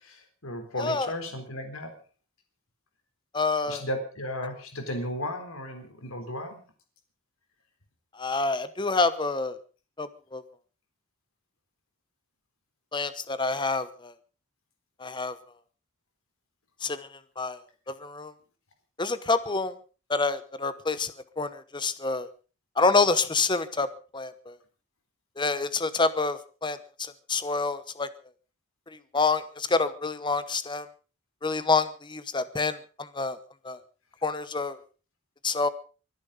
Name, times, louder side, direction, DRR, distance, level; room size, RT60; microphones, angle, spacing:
voice 1, 0.0-1.9 3.7-6.6, left 1 dB, 75° left, 6 dB, 4.0 m, -35 dB
voice 2, 0.8-1.1 3.3-3.9 8.1-9.6 10.0-10.4 12.9-14.1 15.0-15.4 16.8-17.6 17.9-18.3 19.0-19.7 20.1-22.3 22.8-23.9 24.1-24.6 25.4-28.1 28.9-30.9 31.4-33.4 33.6-33.8 34.2-34.8 35.4-35.7, left 3 dB, 20° left, 13 dB, 1.0 m, -27 dB
24.0 x 10.5 x 5.2 m, 0.37 s
head